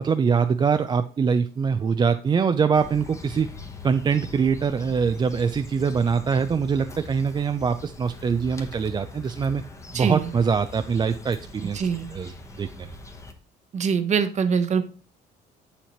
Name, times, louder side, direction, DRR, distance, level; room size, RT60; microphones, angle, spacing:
voice 1, 0.0-3.5 3.8-9.6 9.9-12.9, right 6 dB, 25° right, 9 dB, 0.4 m, -23 dB
sound 1, 2.7-13.3, left 2 dB, 15° left, 1.1 m, -42 dB
voice 2, 9.9-10.3 11.7-12.1 13.7-14.8, right 6 dB, 45° right, 10 dB, 1.0 m, -23 dB
7.4 x 7.1 x 3.0 m, 0.39 s
cardioid pair, 110°, 17 cm